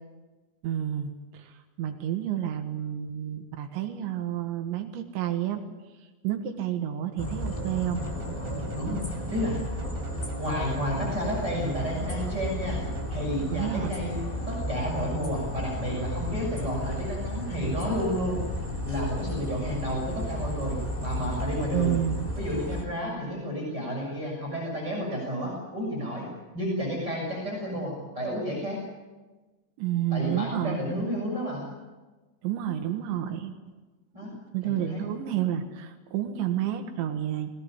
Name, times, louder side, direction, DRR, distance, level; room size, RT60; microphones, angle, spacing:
voice 1, 0.6-5.6 6.2-8.0 13.5-14.0 21.7-22.3 29.8-30.8 32.4-33.6 34.5-37.5, right 11 dB, 80° right, 6 dB, 3.9 m, -30 dB
sound 1, 7.2-22.8, left 1 dB, 10° left, 2.1 m, -33 dB
sound 2, 8.0-13.7, equal, 45° right, 3.1 m, -43 dB
voice 2, 8.7-9.6 10.4-12.8 13.1-14.2 14.5-18.4 18.8-21.9 22.4-26.3 26.5-28.8 30.1-31.6 34.1-34.3 34.8-35.0, equal, 20° right, -3 dB, 7.0 m, -31 dB
21.5 x 18.0 x 9.8 m, 1.2 s
omnidirectional pair, 5.2 m